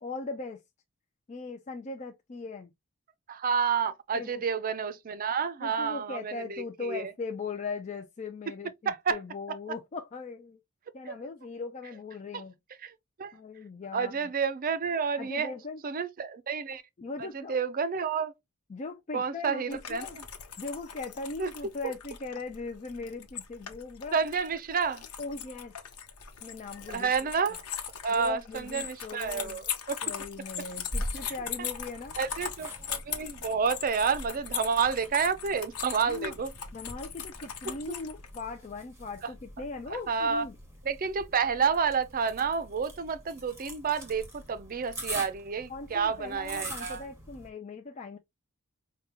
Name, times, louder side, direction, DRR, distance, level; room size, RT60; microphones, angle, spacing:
voice 1, 0.0-0.6 1.3-2.7 4.1-4.4 5.6-10.6 10.9-12.5 13.3-14.1 15.2-15.8 17.0-17.7 18.7-20.2 20.6-24.2 25.2-25.7 26.4-27.1 28.1-29.6 30.0-32.2 36.0-36.4 36.7-40.6 45.7-48.2, left 3 dB, 35° left, 0.4 m, -39 dB
voice 2, 3.3-7.1 8.9-9.2 11.1-11.2 12.3-12.4 12.8-13.3 13.9-15.5 15.8-16.8 17.2-18.3 19.1-20.1 21.4-21.5 24.1-25.0 26.9-27.6 28.0-30.0 31.6-31.7 32.2-36.5 37.9-38.0 39.9-40.4 40.8-47.1, right 6 dB, 40° right, 0.5 m, -30 dB
sound 1, 19.7-38.4, left 8 dB, 85° left, 0.9 m, -40 dB
sound 2, 30.9-47.5, right 1 dB, 10° right, 1.4 m, -44 dB
5.0 x 2.3 x 2.9 m
head